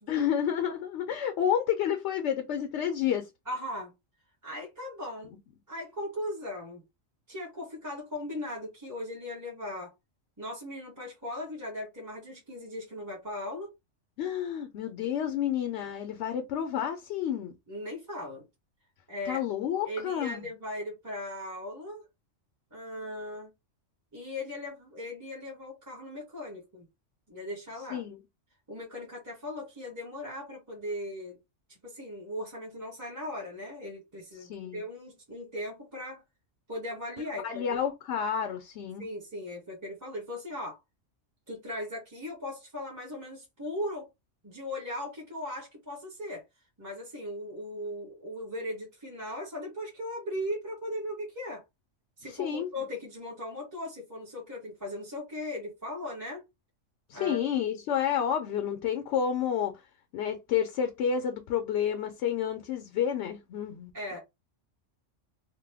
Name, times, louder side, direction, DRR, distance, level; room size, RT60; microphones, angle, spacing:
voice 1, 0.1-3.3 14.2-17.5 19.3-20.4 27.9-28.2 34.4-34.8 37.4-39.0 52.3-52.7 57.1-59.7 60.1-63.9, left 9 dB, 70° left, 0.8 m, -30 dB
voice 2, 3.5-3.9 4.4-5.4 5.7-6.8 7.3-9.9 10.4-13.7 17.7-18.4 19.1-19.4 19.9-22.1 22.7-23.5 24.1-26.9 27.3-28.0 28.7-31.4 31.7-36.2 36.7-37.8 39.0-40.8 41.5-44.1 44.4-46.4 46.8-51.6 52.2-56.4 57.1-57.4 63.9-64.2, left 1 dB, 15° right, 0.9 m, -38 dB
2.9 x 2.1 x 3.3 m
omnidirectional pair, 1.3 m